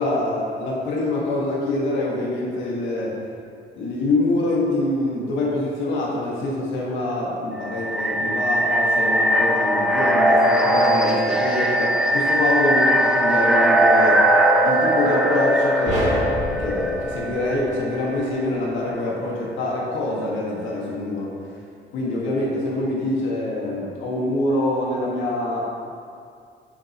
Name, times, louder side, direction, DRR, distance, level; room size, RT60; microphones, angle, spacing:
voice 1, 0.0-3.2 3.7-14.2 14.6-16.3 16.6-21.3 21.9-25.6, left 2 dB, 85° left, -3 dB, 1.7 m, -25 dB
sound 1, 7.6-18.4, right 1 dB, 5° right, 0.5 m, -20 dB
sound 2, 15.9-18.3, right 1 dB, 40° right, 1.5 m, -29 dB
10.0 x 7.6 x 3.0 m, 2.3 s
cardioid pair, 175°, 19 cm